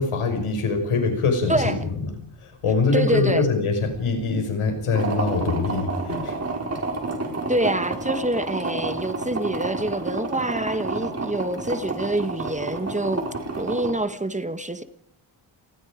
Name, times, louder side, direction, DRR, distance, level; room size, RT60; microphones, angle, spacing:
voice 1, 0.0-2.1 2.4-6.4, left 4 dB, 85° left, 5.8 m, -23 dB
voice 2, 1.5-1.8 2.9-3.5 7.5-13.2 13.6-14.8, right 1 dB, 15° right, 1.2 m, -26 dB
sound 1, 4.9-13.9, right 3 dB, 30° right, 4.7 m, -30 dB
29.5 x 19.5 x 5.1 m
wide cardioid pair, 130°, 49 cm